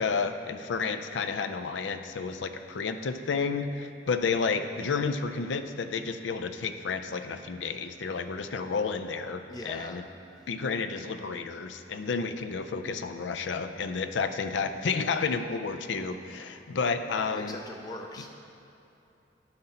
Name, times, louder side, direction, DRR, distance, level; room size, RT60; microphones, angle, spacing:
voice 1, 0.0-10.0 10.5-17.6 18.2-18.3, left 5 dB, 80° left, 9 dB, 0.4 m, -31 dB
voice 2, 9.5-10.0 17.3-18.3, left 1 dB, 20° left, 2 dB, 0.4 m, -41 dB
11.0 x 5.4 x 4.2 m, 2.9 s
head